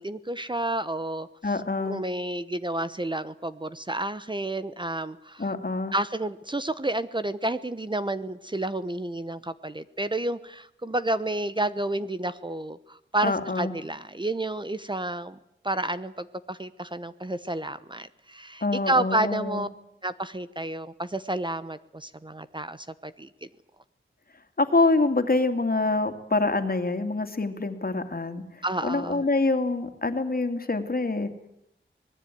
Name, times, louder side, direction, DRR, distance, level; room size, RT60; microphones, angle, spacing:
voice 1, 0.0-1.3 1.8-5.5 5.9-15.4 15.6-19.7 20.0-23.5 28.6-29.2, right 1 dB, 25° right, 13 dB, 1.0 m, -30 dB
voice 2, 1.4-2.0 5.4-6.0 13.2-13.7 18.6-19.6 24.6-31.3, left 3 dB, 45° left, 8 dB, 2.6 m, -26 dB
25.0 x 20.0 x 9.3 m, 0.79 s
wide cardioid pair, 80°, 21 cm